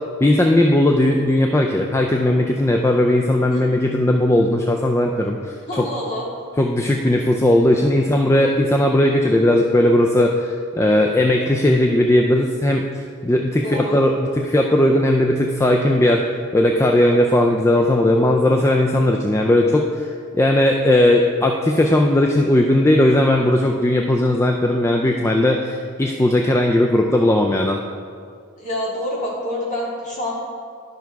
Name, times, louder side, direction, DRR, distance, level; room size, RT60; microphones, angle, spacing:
voice 1, 0.2-5.9 6.6-16.2 16.5-27.8, left 1 dB, 10° left, 2 dB, 0.4 m, -17 dB
voice 2, 5.7-6.3 13.6-14.0 28.6-30.3, left 1 dB, 35° left, -5 dB, 2.4 m, -27 dB
11.5 x 5.8 x 4.6 m, 2.2 s
head